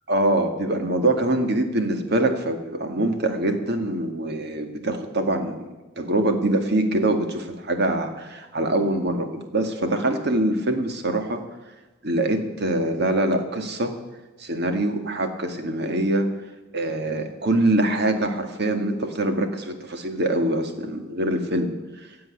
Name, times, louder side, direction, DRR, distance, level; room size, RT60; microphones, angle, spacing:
voice 1, 0.1-5.7 6.0-11.4 12.0-13.9 14.4-16.3 16.7-21.7, right 1 dB, 55° right, 6 dB, 2.0 m, -24 dB
16.0 x 7.7 x 9.7 m, 1.2 s
head